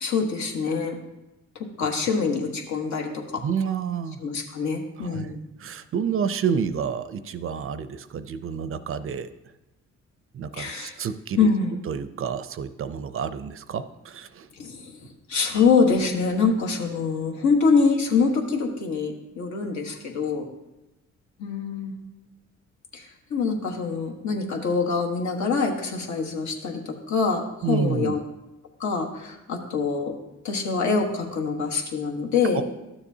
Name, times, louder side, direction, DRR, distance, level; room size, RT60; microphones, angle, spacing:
voice 1, 0.0-1.0 1.8-3.4 4.2-5.4 10.5-10.9 11.4-11.8 14.6-14.9 15.3-20.5 21.4-21.9 22.9-23.0 23.3-28.2 28.8-30.1 30.4-32.6, left 4 dB, 70° left, 2 dB, 1.3 m, -24 dB
voice 2, 3.4-4.2 5.0-5.3 5.6-9.3 10.3-11.5 11.8-14.5 27.6-28.1 32.5-32.6, right 7 dB, 45° right, 12 dB, 0.5 m, -29 dB
12.0 x 7.0 x 2.7 m, 0.98 s
cardioid pair, 90°, 30 cm